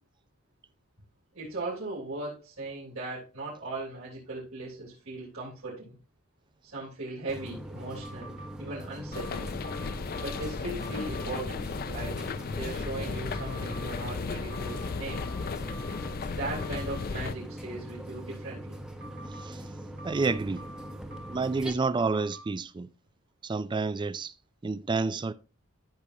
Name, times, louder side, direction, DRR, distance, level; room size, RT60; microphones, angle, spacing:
voice 1, 1.3-6.0 6.6-9.5 10.2-12.2 12.5-15.2 16.4-18.8, right 2 dB, 80° right, 3.5 m, -38 dB
sound 1, 7.3-21.7, right 1 dB, 5° right, 0.9 m, -42 dB
sound 2, 8.0-8.5 9.1-10.5 10.8-11.3 13.3-13.9 14.5-16.1 16.6-17.0 19.0-19.5 20.0-21.5 22.0-22.4, right 2 dB, 45° right, 1.4 m, -47 dB
sound 3, 9.1-17.4, left 4 dB, 45° left, 0.4 m, -35 dB
voice 2, 20.0-20.6 21.3-22.9 23.4-24.3 24.6-25.3, right 4 dB, 20° right, 0.3 m, -29 dB
13.5 x 6.2 x 2.8 m
head